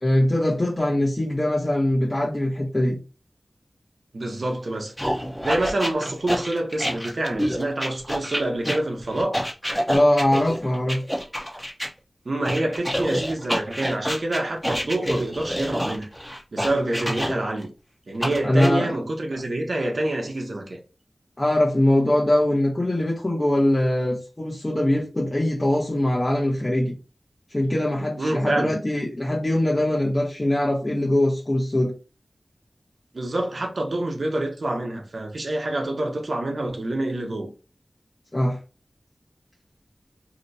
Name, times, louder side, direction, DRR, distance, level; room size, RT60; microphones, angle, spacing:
voice 1, 0.0-3.0 9.9-11.0 18.4-18.9 21.4-27.0 27.5-31.9 38.3-38.6, left 1 dB, 30° left, 0.8 m, -22 dB
voice 2, 4.1-4.9 5.4-9.4 12.2-16.1 16.5-17.7 18.1-20.8 28.2-28.7 33.1-37.5, right 1 dB, 75° right, 0.8 m, -27 dB
sound 1, 5.0-11.9 12.4-17.6 18.2-18.7, equal, 5° left, 0.9 m, -27 dB
2.8 x 2.2 x 4.0 m
wide cardioid pair, 60°, 0 cm